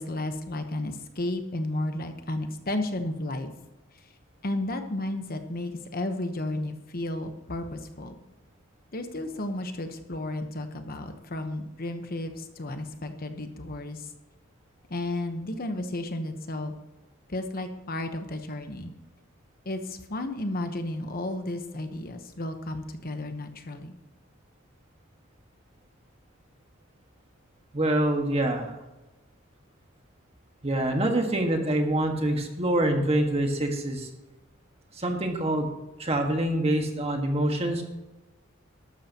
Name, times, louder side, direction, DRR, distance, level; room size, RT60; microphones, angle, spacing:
voice 1, 0.0-3.5 4.4-8.2 8.9-14.1 14.9-16.7 17.3-18.9 19.6-24.0, left 1 dB, 45° left, 7 dB, 1.0 m, -33 dB
voice 2, 27.7-28.7 30.6-34.1 35.0-35.7 36.0-37.8, right 1 dB, 30° right, 3 dB, 1.6 m, -25 dB
13.5 x 12.5 x 3.0 m, 1.0 s
head